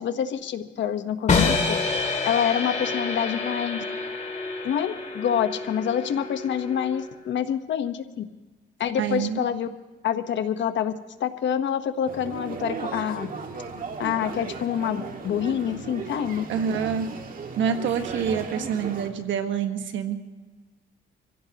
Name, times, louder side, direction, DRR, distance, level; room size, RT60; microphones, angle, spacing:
voice 1, 0.0-1.8 2.2-3.8 4.6-8.2 8.8-9.7 10.0-10.9 11.2-13.3 14.0-16.4, left 9 dB, 65° left, 9 dB, 1.0 m, -27 dB
sound 1, 1.3-7.3, left 4 dB, 35° left, 2.3 m, -28 dB
voice 2, 9.0-9.4 16.5-17.1 17.6-20.2, right 7 dB, 70° right, 7 dB, 1.3 m, -26 dB
sound 2, 12.0-19.1, right 4 dB, 45° right, 1.9 m, -36 dB
25.0 x 16.0 x 2.9 m, 1.2 s
cardioid pair, 90°, 20 cm